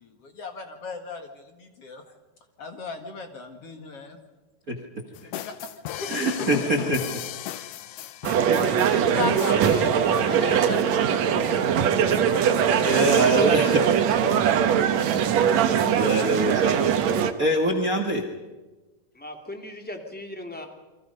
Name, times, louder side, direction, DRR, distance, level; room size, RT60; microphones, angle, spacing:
voice 1, 0.0-2.0 2.6-4.2 4.8-4.9 5.2-6.3 8.9-12.8, left 3 dB, 50° left, 5 dB, 2.5 m, -37 dB
sound 1, 5.1-9.8, left 13 dB, 85° left, 2.5 m, -35 dB
voice 2, 6.1-7.0 12.8-13.8 15.9-16.9 17.4-18.2, right 1 dB, 35° right, 4 dB, 1.7 m, -23 dB
sound 2, 8.2-17.3, right 8 dB, 65° right, 2.3 m, -21 dB
voice 3, 8.3-12.2 19.1-20.7, left 1 dB, 5° left, 3 dB, 2.3 m, -39 dB
29.5 x 23.5 x 5.4 m, 1.2 s
omnidirectional pair, 3.7 m